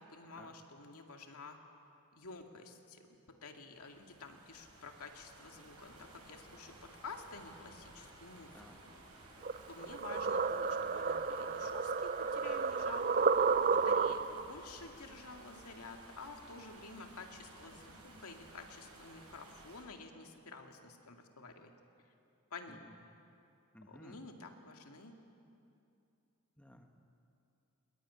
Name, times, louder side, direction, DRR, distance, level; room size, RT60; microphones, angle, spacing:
voice 1, 0.0-1.6 2.1-8.7 9.7-21.7 22.5-22.9 23.9-25.2, left 3 dB, 80° left, 4 dB, 2.2 m, -51 dB
sound 1, 3.7-19.8, right 1 dB, 80° right, 7.3 m, -56 dB
sound 2, 9.4-14.5, right 5 dB, 40° right, 0.6 m, -32 dB
voice 2, 23.7-24.2 26.6-26.9, equal, 5° left, 4 dB, 1.3 m, -56 dB
21.5 x 21.0 x 9.6 m, 2.6 s
head